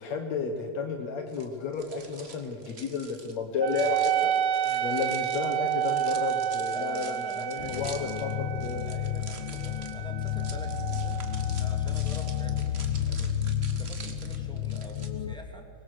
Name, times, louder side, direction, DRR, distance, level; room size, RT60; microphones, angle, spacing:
voice 1, 0.0-4.3 4.8-8.3 8.6-8.8, left 5 dB, 70° left, 4 dB, 2.5 m, -32 dB
sound 1, 1.3-15.1, right 4 dB, 45° right, 0.8 m, -47 dB
Wind instrument woodwind instrument, 3.6-12.5, right 10 dB, 70° right, 1.7 m, -31 dB
voice 2, 4.6-4.9 6.6-8.5 8.8-13.5 13.8-15.7, right 1 dB, ahead, 2 dB, 1.7 m, -46 dB
sound 2, 7.6-15.4, left 10 dB, 90° left, 1.1 m, -31 dB
24.0 x 20.0 x 6.5 m, 2.6 s
omnidirectional pair, 3.3 m